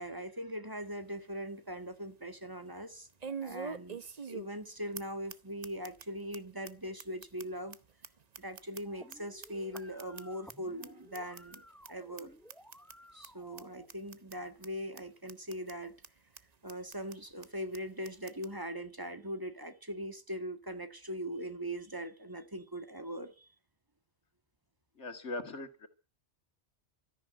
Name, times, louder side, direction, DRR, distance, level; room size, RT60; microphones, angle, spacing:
voice 1, 0.0-3.1 3.4-7.8 8.4-11.6 11.9-12.3 13.1-15.9 16.6-23.5, equal, 20° right, 1.8 m, -41 dB
sound 1, 0.8-0.9 1.4-1.5 3.2-4.7 5.0-5.1 5.3-5.4 5.6-6.0 6.3-6.4 6.7-6.8 7.0-9.2 9.4-10.5 10.8-10.9 11.1-11.6 11.8-11.9 12.2-12.3 12.5-12.9 13.2-13.3 13.6-13.7 13.9-14.4 14.6-14.7 15.0-15.1 15.3-15.7 16.0-16.1 16.4-16.5 16.7-17.2 17.4-17.5 17.7-17.8 18.0-18.5, right 5 dB, 40° right, 0.9 m, -44 dB
sound 2, 8.8-13.8, equal, ahead, 0.7 m, -56 dB
voice 2, 25.0-25.9, left 2 dB, 90° left, 2.3 m, -40 dB
13.5 x 10.5 x 8.7 m
omnidirectional pair, 1.2 m